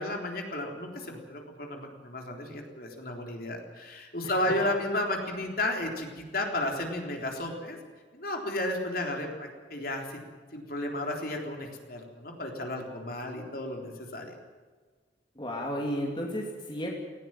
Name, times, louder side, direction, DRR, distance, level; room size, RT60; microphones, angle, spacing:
voice 1, 0.0-7.8 8.1-10.2 10.5-14.4, left 1 dB, 50° left, 2 dB, 3.7 m, -33 dB
voice 2, 15.3-16.9, equal, 25° left, -1 dB, 2.9 m, -33 dB
19.0 x 17.0 x 9.1 m, 1.4 s
head